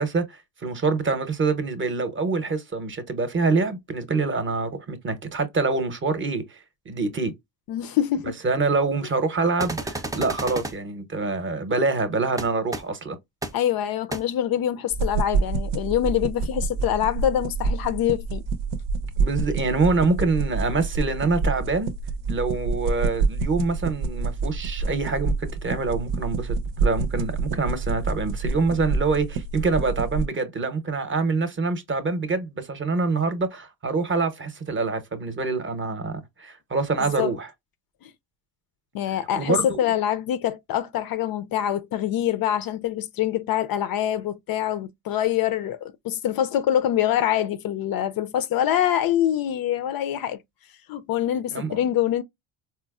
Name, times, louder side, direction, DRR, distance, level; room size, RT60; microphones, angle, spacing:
voice 1, 0.0-6.6 6.9-7.3 8.4-13.2 19.2-21.9 22.3-37.5 39.3-39.7 51.5-51.8, right 3 dB, 25° right, 0.7 m, -25 dB
voice 2, 7.7-8.4 13.5-18.4 37.0-37.3 38.0-38.1 38.9-50.4 50.9-52.2, left 11 dB, 55° left, 0.5 m, -25 dB
sound 1, 9.6-10.7 12.4-12.5 12.7-12.8 13.4-13.5 14.1-14.2, right 2 dB, 10° right, 0.4 m, -30 dB
sound 2, 14.9-30.3, right 4 dB, 80° right, 0.7 m, -27 dB
4.2 x 2.0 x 2.3 m
cardioid pair, 95°, 44 cm